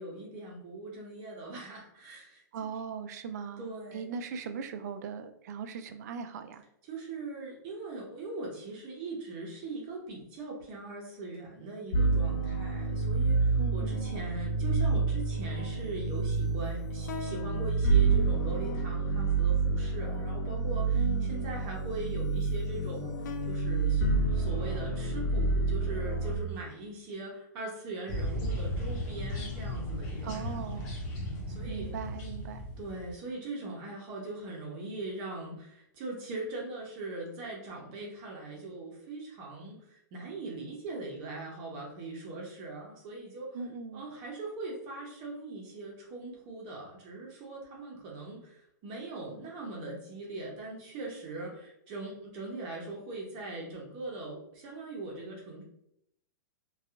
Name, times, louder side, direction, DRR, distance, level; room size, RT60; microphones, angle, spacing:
voice 1, 0.0-2.7 3.6-4.1 6.9-30.9 31.5-31.9 32.8-43.6 43.9-55.6, right 2 dB, 40° right, -2 dB, 0.8 m, -41 dB
voice 2, 2.5-6.6 13.6-14.0 20.9-21.4 30.2-30.9 31.6-32.6 43.5-44.0, right 6 dB, 60° right, 9 dB, 0.3 m, -39 dB
sound 1, 11.9-26.4, right 3 dB, 65° left, 0.5 m, -28 dB
sound 2, 28.1-33.1, equal, 35° left, 0.9 m, -35 dB
2.6 x 2.3 x 2.4 m, 0.75 s
hypercardioid pair, 135°, 10 cm